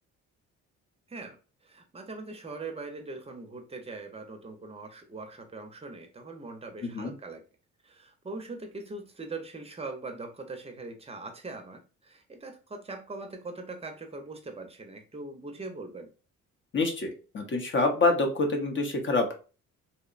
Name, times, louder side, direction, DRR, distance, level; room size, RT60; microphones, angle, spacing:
voice 1, 1.6-7.4 7.8-16.1, right 3 dB, 20° right, 5 dB, 0.5 m, -41 dB
voice 2, 6.8-7.1 16.7-19.3, left 3 dB, 40° left, 3 dB, 0.7 m, -26 dB
2.7 x 2.0 x 2.4 m, 0.35 s
cardioid pair, 90°, 30 cm